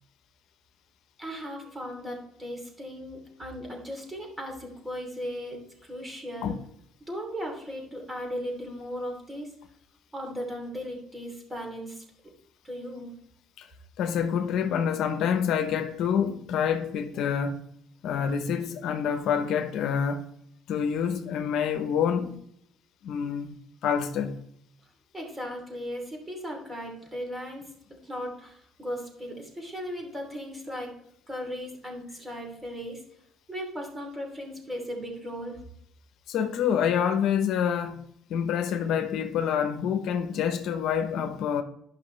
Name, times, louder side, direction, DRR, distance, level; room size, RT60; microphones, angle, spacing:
voice 1, 1.2-6.6 7.1-9.5 10.1-12.0 12.6-13.1 25.1-30.9 31.3-33.0 33.5-35.6, equal, 15° right, 2.9 m, -37 dB
voice 2, 14.0-17.6 18.0-20.3 20.7-22.4 23.0-24.4 36.3-41.6, left 7 dB, 65° left, 0.8 m, -27 dB
12.0 x 5.7 x 3.2 m
cardioid pair, 105°, 0 cm